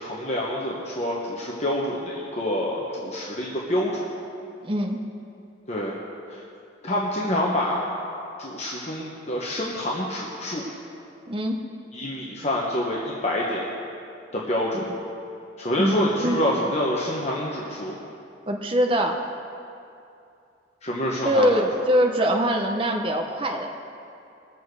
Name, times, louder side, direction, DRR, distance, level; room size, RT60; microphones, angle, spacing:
voice 1, 0.0-4.1 5.7-5.9 6.3-6.4 6.8-8.1 8.4-10.7 11.9-13.7 14.3-14.9 15.6-17.9 20.8-21.5, left 1 dB, 35° left, -4 dB, 1.1 m, -27 dB
voice 2, 4.6-5.0 11.3-11.6 14.7-14.8 15.8-16.4 18.5-19.2 21.2-23.7, equal, 25° right, 2 dB, 0.7 m, -23 dB
20.0 x 7.4 x 4.8 m, 2.6 s
head